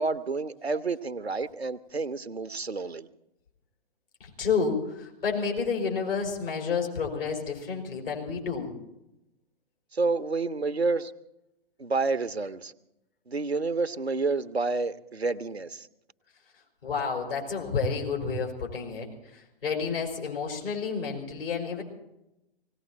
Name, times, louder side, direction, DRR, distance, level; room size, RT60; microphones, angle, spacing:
voice 1, 0.0-3.1 9.9-11.1 11.8-12.7 13.3-15.9, right 3 dB, 85° right, 12 dB, 0.8 m, -29 dB
voice 2, 4.4-8.7 16.8-19.1 19.6-21.8, left 5 dB, 65° left, 1 dB, 4.9 m, -30 dB
18.5 x 17.5 x 4.3 m, 0.89 s
figure-of-eight pair, 120°, 31 cm